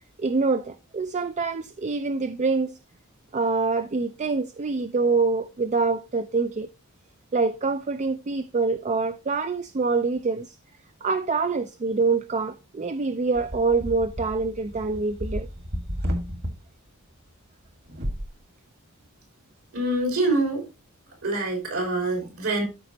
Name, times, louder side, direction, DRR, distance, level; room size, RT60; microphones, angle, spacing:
voice 1, 0.2-2.7 3.3-6.7 7.3-10.6 11.0-15.5, right 4 dB, 30° right, 0.4 m, -25 dB
sound 1, 13.4-16.5 17.9-18.3, equal, 50° right, 1.8 m, -32 dB
voice 2, 19.7-20.6 21.2-22.6, right 2 dB, 70° right, 3.7 m, -25 dB
13.0 x 5.1 x 2.8 m
head